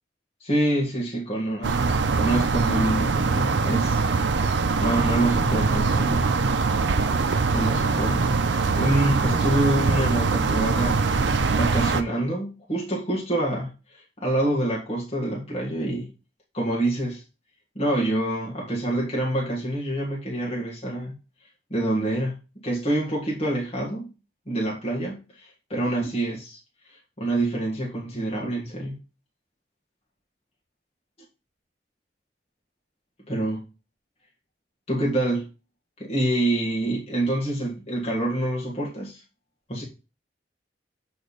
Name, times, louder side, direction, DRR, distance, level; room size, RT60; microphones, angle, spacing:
voice 1, 0.4-4.0 4.5-6.3 7.5-8.4 8.8-11.1 11.5-16.1 16.5-17.2 17.7-21.1 21.7-24.1 24.5-26.6 27.2-29.0 33.3-33.6 34.9-35.5 36.0-39.2 39.7-39.8, right 1 dB, 35° left, 1.7 m, -26 dB
sound 1, 1.6-12.0, right 4 dB, 85° right, 0.6 m, -23 dB
7.8 x 3.3 x 4.0 m
head